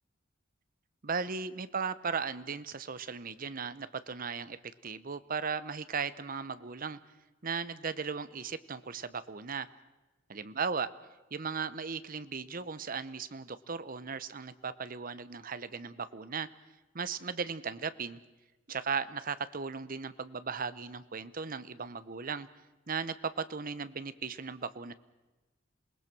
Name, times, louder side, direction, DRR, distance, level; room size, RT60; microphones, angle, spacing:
voice 1, 1.0-4.6 4.8-7.0 7.4-9.7 10.3-10.9 11.3-16.5 16.9-18.2 18.7-22.5 22.9-24.9, right 5 dB, 45° right, 14 dB, 0.9 m, -37 dB
27.5 x 19.5 x 6.1 m, 1.1 s
head